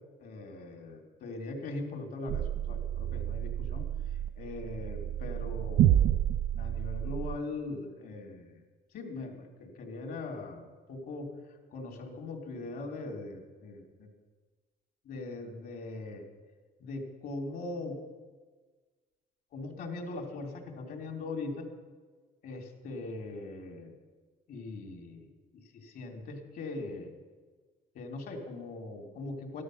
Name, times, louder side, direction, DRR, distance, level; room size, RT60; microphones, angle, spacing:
voice 1, 0.2-3.9 4.3-6.1 6.6-8.6 8.9-14.1 15.0-16.2 16.8-18.0 19.5-21.7 22.4-23.9 24.5-27.1 27.9-29.6, left 2 dB, 60° left, 2 dB, 3.0 m, -40 dB
sound 1, 2.3-7.4, right 11 dB, 60° right, 0.4 m, -29 dB
14.0 x 11.5 x 6.4 m, 1.4 s
cardioid pair, 110°, 17 cm